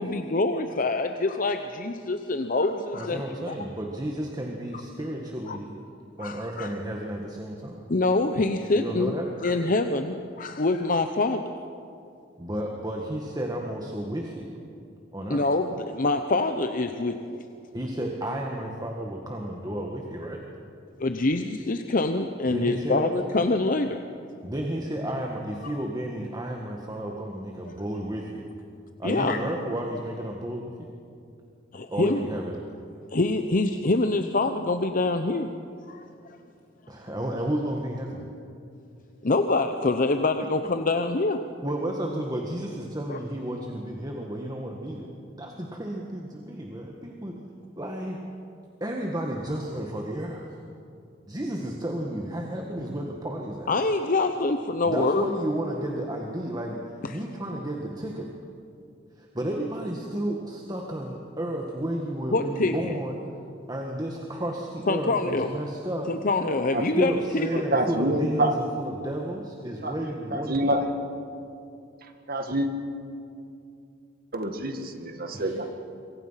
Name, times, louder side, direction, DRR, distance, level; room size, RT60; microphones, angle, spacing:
voice 1, 0.0-3.6 5.5-5.6 6.2-6.7 7.9-9.1 9.4-11.6 15.3-17.4 21.0-24.0 25.6-25.7 29.0-29.4 31.7-32.2 33.1-35.5 35.9-36.1 39.2-41.4 43.1-43.2 53.7-55.2 57.0-57.2 62.3-62.9 64.9-65.5 66.1-67.6, left 2 dB, 45° left, 7 dB, 0.8 m, -25 dB
voice 2, 2.9-5.7 6.2-7.8 8.8-9.3 12.4-14.5 15.1-15.5 17.7-20.4 22.5-23.1 24.4-28.5 29.0-30.9 31.9-32.6 36.9-38.2 41.6-45.1 45.4-47.4 47.8-48.2 48.8-50.5 51.3-53.7 54.8-58.3 59.2-63.2 63.7-66.1 67.0-70.7 75.3-75.7, right 1 dB, 20° right, 0 dB, 1.8 m, -32 dB
voice 3, 67.5-68.5 69.8-69.9 70.3-70.9 72.3-72.7 74.3-75.7, right 1 dB, 55° right, 6 dB, 2.0 m, -26 dB
27.0 x 23.5 x 5.8 m, 2.5 s
head